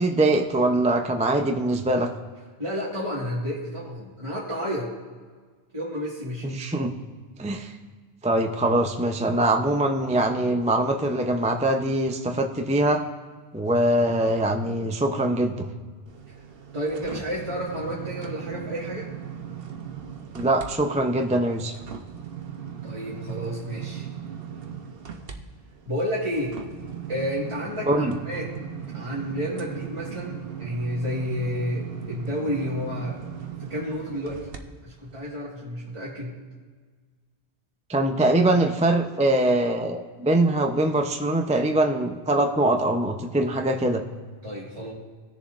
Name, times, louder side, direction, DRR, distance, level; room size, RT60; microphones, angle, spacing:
voice 1, 0.0-2.1 6.4-6.9 7.4-7.7 8.2-13.0 13.5-15.6 20.3-21.7 27.9-28.2 37.9-44.0, right 1 dB, 10° right, 3 dB, 0.4 m, -23 dB
voice 2, 2.6-4.9 5.7-6.5 16.7-19.1 22.8-24.1 25.9-26.6 27.1-28.5 28.9-33.2 33.6-34.5 34.8-36.3 44.4-44.9, equal, 30° right, -7 dB, 1.8 m, -31 dB
sound 1, 16.1-20.7 21.1-34.6 35.1-35.2, right 8 dB, 65° right, 1.0 m, -38 dB
18.5 x 7.1 x 2.5 m, 1.5 s
omnidirectional pair, 1.1 m